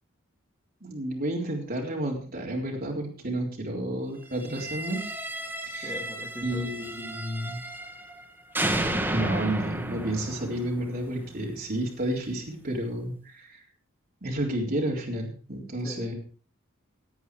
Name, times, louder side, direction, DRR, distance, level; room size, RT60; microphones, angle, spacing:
voice 1, 0.8-5.0 5.7-5.9 6.4-7.6 9.1-13.6 14.2-16.1, right 1 dB, 45° right, -1 dB, 3.8 m, -31 dB
sound 1, 4.4-8.2 8.5-11.6, right 1 dB, 10° right, 1.6 m, -33 dB
voice 2, 5.8-6.7 15.8-16.1, left 1 dB, 20° left, 0 dB, 2.5 m, -40 dB
18.0 x 8.5 x 4.9 m, 0.39 s
head